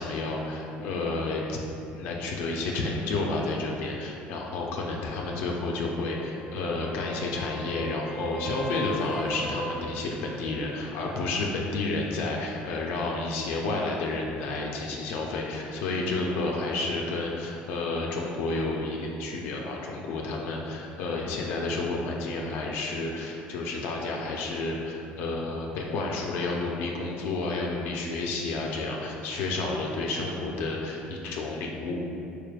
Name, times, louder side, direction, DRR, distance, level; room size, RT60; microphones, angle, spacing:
voice 1, 0.0-1.6 1.9-32.0, left 3 dB, 75° left, -1 dB, 0.4 m, -30 dB
sound 1, 5.1-10.8 14.9-15.0, right 1 dB, 10° right, 0.7 m, -39 dB
4.4 x 3.2 x 2.3 m, 2.7 s
cardioid pair, 130°, 4 cm